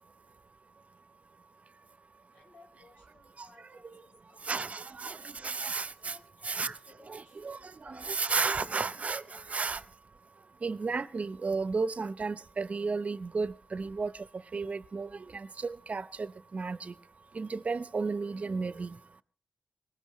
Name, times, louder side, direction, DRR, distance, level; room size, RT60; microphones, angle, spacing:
voice 1, 2.3-4.8 5.0-5.1 5.9-8.1 8.5-9.8, left 3 dB, 90° left, 4.5 m, -60 dB
voice 2, 4.4-6.2 6.4-6.8 7.1-7.6 7.8-9.8 10.6-14.1 14.5-16.9 17.3-19.0, right 4 dB, 55° right, 0.8 m, -33 dB
22.0 x 19.5 x 3.1 m
supercardioid pair, 40°, 3 cm